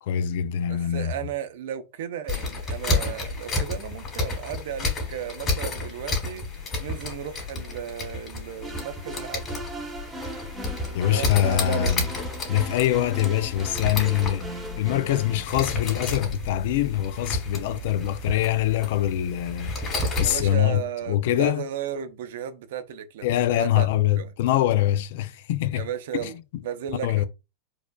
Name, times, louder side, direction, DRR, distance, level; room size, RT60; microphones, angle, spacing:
voice 1, 0.0-1.1 10.9-12.1 12.5-21.7 23.2-25.9 26.2-26.3 27.0-27.2, left 12 dB, 70° left, 0.3 m, -24 dB
voice 2, 0.7-9.5 11.1-11.9 20.1-23.3 23.6-23.9 24.2-24.3 25.7-26.3 26.6-27.2, right 9 dB, 75° right, 0.6 m, -34 dB
sound 1, 2.3-20.5, left 2 dB, 25° left, 2.2 m, -31 dB
sound 2, 8.6-15.5, right 1 dB, 15° right, 0.9 m, -38 dB
4.7 x 2.4 x 2.2 m
supercardioid pair, 125°, 0 cm